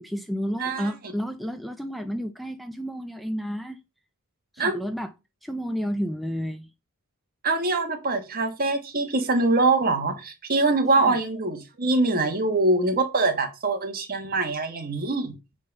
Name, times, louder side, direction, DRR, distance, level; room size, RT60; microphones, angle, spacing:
voice 1, 0.0-3.8 4.5-5.1 5.4-6.7 11.0-11.2, equal, ahead, 0.5 m, -31 dB
voice 2, 0.6-0.9 4.6-4.8 7.4-15.3, right 3 dB, 45° right, 1.5 m, -24 dB
8.8 x 3.8 x 5.3 m
head